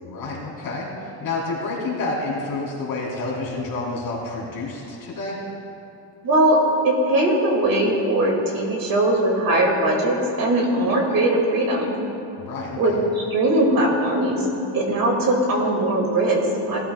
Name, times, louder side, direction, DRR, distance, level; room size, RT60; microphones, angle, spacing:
voice 1, 0.0-5.4 12.4-13.0, left 3 dB, 50° left, -4 dB, 3.0 m, -29 dB
voice 2, 6.2-6.6 6.8-12.0 12.8-14.5 14.7-16.8, right 1 dB, 50° right, -1 dB, 2.1 m, -20 dB
18.0 x 12.5 x 2.2 m, 2.8 s
cardioid pair, 160°, 45 cm